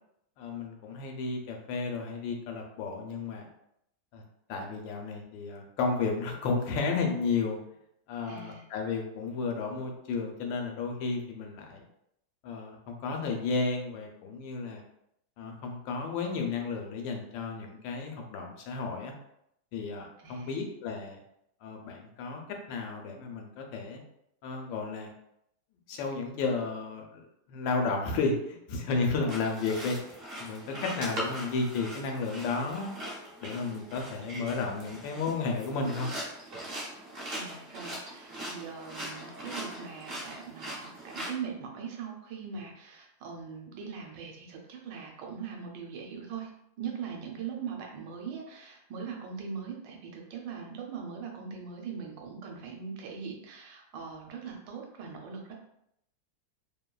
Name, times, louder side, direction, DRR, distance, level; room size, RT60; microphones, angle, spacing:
voice 1, 0.4-3.5 4.1-4.2 4.5-7.6 8.1-11.8 12.4-14.8 15.4-19.1 19.7-21.2 21.6-22.4 22.7-24.0 24.4-25.1 25.9-30.0 30.4-33.0 33.4-36.1, left 4 dB, 85° left, 2 dB, 1.3 m, -33 dB
voice 2, 8.3-8.6 20.2-20.5 37.3-46.5 46.8-55.5, right 6 dB, 75° right, 1 dB, 1.2 m, -41 dB
sound 1, 29.3-41.3, right 1 dB, 50° right, 0.7 m, -41 dB
3.2 x 2.2 x 2.2 m, 0.77 s
omnidirectional pair, 2.0 m